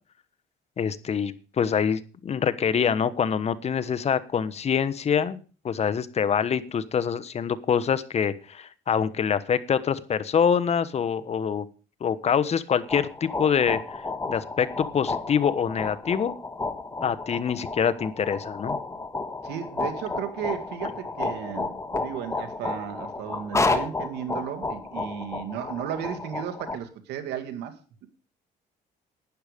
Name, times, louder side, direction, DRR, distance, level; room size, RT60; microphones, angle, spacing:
voice 1, 0.8-11.7 12.0-14.0 14.3-16.3 17.0-18.8, left 7 dB, 40° left, 13 dB, 1.1 m, -25 dB
sound 1, 12.7-26.8, left 3 dB, 15° left, 1.6 m, -32 dB
voice 2, 19.4-27.8, right 9 dB, 85° right, 7 dB, 2.2 m, -34 dB
12.0 x 10.0 x 5.2 m, 0.37 s
cardioid pair, 110°, 17 cm